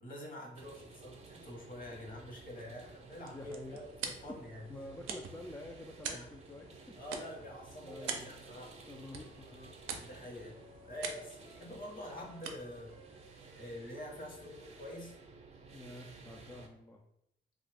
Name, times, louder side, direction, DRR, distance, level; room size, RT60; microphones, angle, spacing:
voice 1, 0.0-4.7 6.1-6.3 7.0-8.7 9.9-10.6 10.8-13.0 13.6-15.1, left 1 dB, 45° left, -1 dB, 1.2 m, -46 dB
sound 1, 0.5-16.7, right 4 dB, 35° right, 0.6 m, -55 dB
sound 2, 2.9-14.2, right 6 dB, 85° right, 0.5 m, -47 dB
voice 2, 3.2-3.8 4.2-4.4 4.7-7.0 7.8-8.4 8.9-9.7 15.7-17.0, left 1 dB, 10° left, 1 dB, 0.3 m, -49 dB
Wind instrument woodwind instrument, 8.5-11.6 12.1-15.3, equal, 70° left, 0.8 m, -63 dB
2.8 x 2.5 x 3.3 m, 0.78 s
cardioid pair, 90°, 20 cm